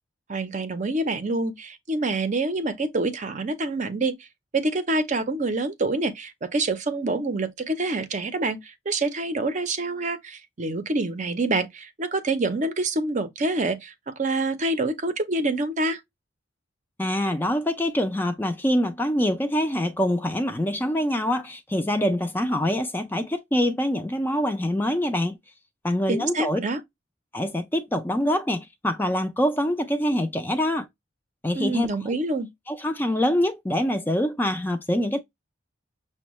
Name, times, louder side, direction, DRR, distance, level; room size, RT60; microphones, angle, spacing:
voice 1, 0.3-4.2 4.5-16.0 26.1-26.8 31.5-32.5, right 2 dB, 40° right, 0.5 m, -26 dB
voice 2, 17.0-25.4 25.8-26.6 27.3-30.9 31.4-32.2 32.7-35.2, left 1 dB, 10° left, 0.3 m, -25 dB
6.1 x 2.1 x 3.0 m
head